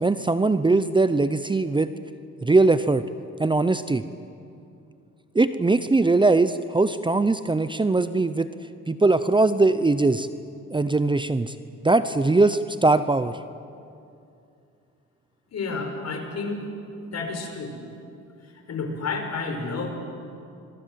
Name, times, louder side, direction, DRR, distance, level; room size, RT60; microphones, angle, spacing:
voice 1, 0.0-1.9 2.4-3.0 3.4-4.0 5.3-8.5 8.9-10.3 10.7-11.5 11.8-13.4, right 3 dB, 15° right, 12 dB, 0.8 m, -21 dB
voice 2, 15.5-16.7 17.1-17.7 18.7-19.9, left 4 dB, 60° left, 4 dB, 5.5 m, -30 dB
27.5 x 22.0 x 7.6 m, 2.5 s
cardioid pair, 90°, 30 cm